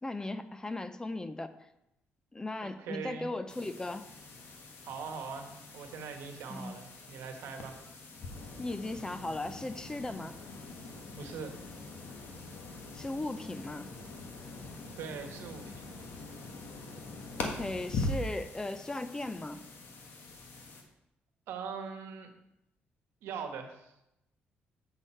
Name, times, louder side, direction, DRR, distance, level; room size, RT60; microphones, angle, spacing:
voice 1, 0.0-1.5 2.3-4.0 6.5-6.8 8.6-10.4 12.9-13.9 17.4-19.7, left 2 dB, 15° left, 11 dB, 0.5 m, -37 dB
voice 2, 2.6-3.3 4.9-7.7 11.1-11.5 15.0-16.1 21.5-22.4 23.2-23.9, right 6 dB, 90° right, 5 dB, 1.2 m, -42 dB
sound 1, 3.5-20.8, left 2 dB, 70° left, 1.5 m, -43 dB
8.2 x 6.6 x 4.4 m, 0.86 s
cardioid pair, 100°, 4 cm